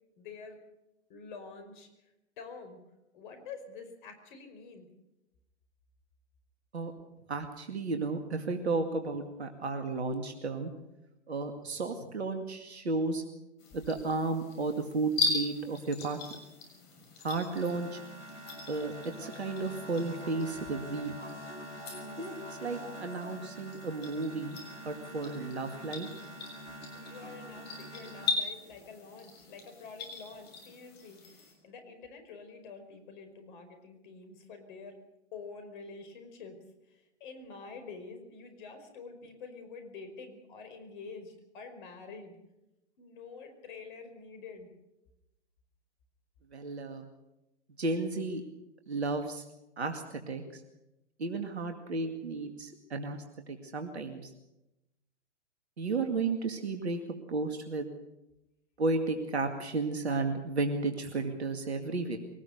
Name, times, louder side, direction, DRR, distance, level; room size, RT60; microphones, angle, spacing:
voice 1, 0.2-0.6 1.1-1.9 2.4-2.8 3.1-4.9 26.9-35.0 35.3-36.6 36.9-42.3 43.0-44.7, left 4 dB, 45° left, 7 dB, 5.2 m, -47 dB
voice 2, 7.3-10.7 11.3-13.2 13.7-16.2 17.2-18.0 18.7-18.9 19.2-21.2 22.2-24.6 24.8-26.1 46.5-47.1 47.8-48.4 48.9-49.4 49.8-50.6 51.2-54.3 55.8-57.0 57.3-57.9 58.8-62.2, right 3 dB, 65° right, 6 dB, 2.3 m, -33 dB
sound 1, 13.6-31.5, left 4 dB, 30° left, 6.7 m, -40 dB
sound 2, 17.3-28.4, equal, 85° left, 6.2 m, -45 dB
23.0 x 19.0 x 6.7 m, 0.93 s
figure-of-eight pair, 110°, 34 cm